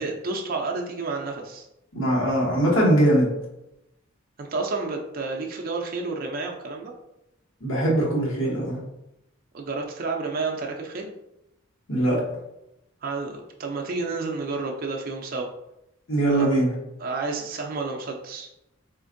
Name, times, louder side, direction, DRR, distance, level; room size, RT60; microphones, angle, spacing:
voice 1, 0.0-1.6 4.4-6.9 9.5-11.1 13.0-15.5 16.3-16.6 17.0-18.5, right 3 dB, 45° right, 1 dB, 0.4 m, -30 dB
voice 2, 1.9-3.4 7.6-8.8 11.9-12.2 16.1-16.7, right 1 dB, 70° left, -4 dB, 1.2 m, -21 dB
4.2 x 2.5 x 2.5 m, 0.87 s
head